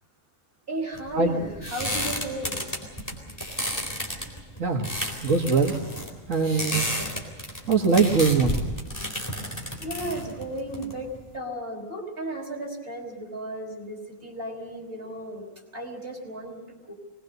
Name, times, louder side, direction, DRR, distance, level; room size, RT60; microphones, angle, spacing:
voice 1, 0.7-2.7 9.6-15.5 15.7-16.9, right 1 dB, 45° right, 2 dB, 5.4 m, -35 dB
sound 1, 0.9-11.3, equal, 15° left, 3.9 m, -32 dB
voice 2, 4.6-4.9 5.2-5.7 6.3-6.9 7.7-8.6, right 4 dB, 85° right, 0 dB, 2.0 m, -22 dB
24.5 x 21.0 x 6.6 m, 1.2 s
omnidirectional pair, 1.3 m